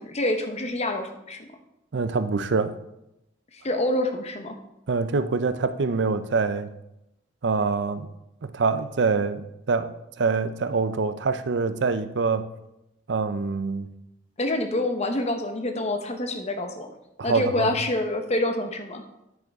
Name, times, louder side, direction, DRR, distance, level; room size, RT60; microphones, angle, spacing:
voice 1, 0.0-1.5 3.5-4.6 14.4-16.9 17.2-19.0, left 1 dB, 35° left, 6 dB, 0.9 m, -27 dB
voice 2, 1.9-2.7 4.9-6.7 7.4-8.1 8.4-12.5 13.1-13.9 17.2-17.7, right 4 dB, 70° right, 12 dB, 0.6 m, -25 dB
9.6 x 7.9 x 3.6 m, 0.87 s
head